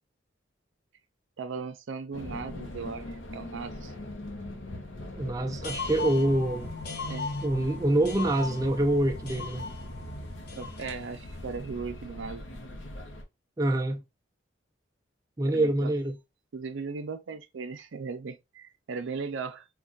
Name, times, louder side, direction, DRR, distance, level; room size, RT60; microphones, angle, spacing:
voice 1, 1.4-3.9 7.1-7.3 10.5-12.4 15.4-15.9 16.5-19.7, right 5 dB, 85° right, 0.5 m, -37 dB
sound 1, 2.1-13.2, left 1 dB, 90° left, 0.7 m, -40 dB
voice 2, 5.2-6.7 7.4-9.7 13.6-14.0 15.4-16.2, right 1 dB, 20° right, 0.3 m, -26 dB
sound 2, 5.6-11.1, left 4 dB, 55° left, 0.8 m, -39 dB
3.2 x 2.2 x 2.4 m
head